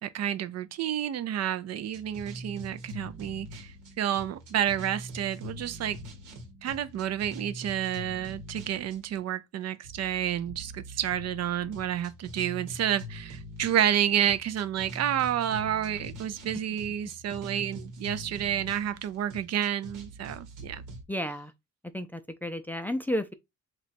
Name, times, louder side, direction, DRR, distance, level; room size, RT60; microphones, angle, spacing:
voice 1, 0.0-6.0 6.6-20.8, right 10 dB, 60° right, 0.5 m, -30 dB
sound 1, 1.9-9.2 9.8-21.0, equal, 85° right, 1.3 m, -44 dB
voice 2, 21.1-21.5 21.9-23.3, equal, 5° left, 0.4 m, -32 dB
2.9 x 2.3 x 4.2 m
cardioid pair, 90°, 30 cm